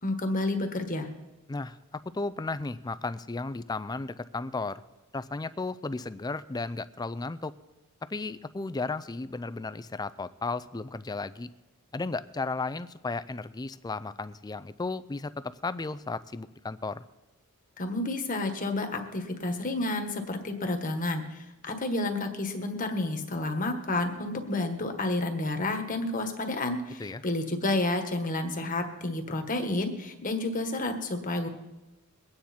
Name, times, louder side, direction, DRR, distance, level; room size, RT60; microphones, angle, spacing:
voice 1, 0.0-1.1 17.8-31.5, left 2 dB, 40° left, 5 dB, 1.5 m, -30 dB
voice 2, 2.1-4.8 5.1-7.5 8.1-11.5 11.9-17.0 27.0-27.2, left 3 dB, 20° left, 14 dB, 0.4 m, -34 dB
22.5 x 9.5 x 4.4 m, 1.1 s
head